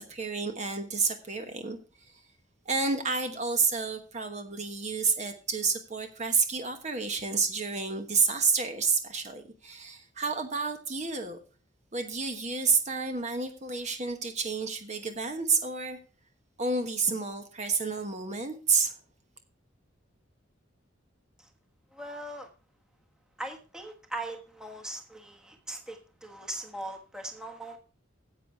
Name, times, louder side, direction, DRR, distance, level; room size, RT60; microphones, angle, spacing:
voice 1, 0.0-2.2 2.6-11.4 11.9-16.0 16.6-19.0, right 4 dB, 35° right, 6 dB, 1.2 m, -30 dB
voice 2, 21.9-22.5 23.4-27.8, right 1 dB, 5° right, 3 dB, 1.3 m, -40 dB
10.0 x 8.2 x 4.4 m, 0.35 s
head